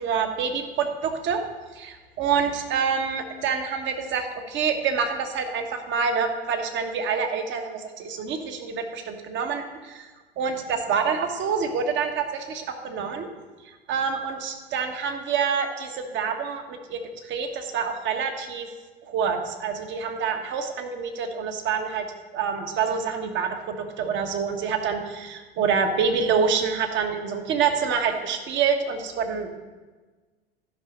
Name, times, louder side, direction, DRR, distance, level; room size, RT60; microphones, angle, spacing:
voice 1, 0.0-1.4 1.7-10.1 10.4-13.3 13.6-18.7 19.0-22.0 22.3-29.5, right 6 dB, 35° right, 5 dB, 1.3 m, -27 dB
13.0 x 5.7 x 5.2 m, 1.3 s
figure-of-eight pair, 80°, 31 cm